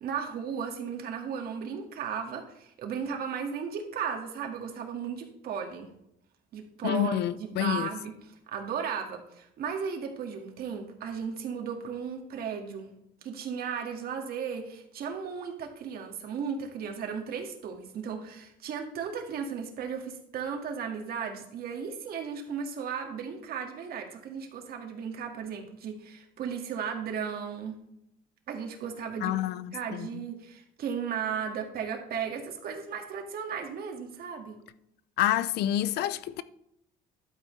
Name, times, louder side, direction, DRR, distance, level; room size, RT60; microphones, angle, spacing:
voice 1, 0.0-5.9 6.5-12.9 13.2-27.8 28.5-29.4 29.7-34.6, right 6 dB, 65° right, 1.9 m, -35 dB
voice 2, 6.8-7.9 29.2-30.1 35.2-36.4, left 12 dB, 75° left, 0.6 m, -28 dB
11.5 x 8.7 x 3.2 m
cardioid pair, 110°, 17 cm